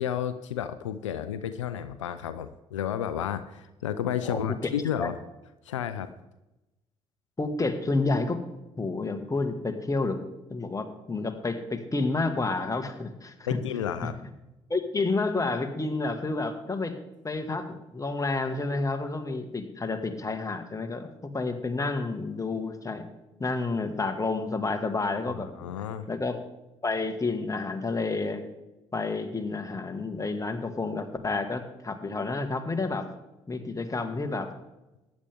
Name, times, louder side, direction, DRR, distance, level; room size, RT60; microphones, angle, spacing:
voice 1, 0.0-5.2 5.6-6.1 13.5-14.2 25.3-26.1, left 9 dB, 90° left, 11 dB, 0.5 m, -32 dB
voice 2, 7.4-8.4 8.8-10.2 10.5-13.6 14.0-14.1 14.7-17.0 17.2-23.0 23.4-25.5 26.1-26.4 26.8-28.4 28.9-33.1 33.5-34.5, left 3 dB, 20° left, 6 dB, 1.8 m, -30 dB
14.5 x 10.5 x 3.6 m, 1.0 s
hypercardioid pair, 50°, 15 cm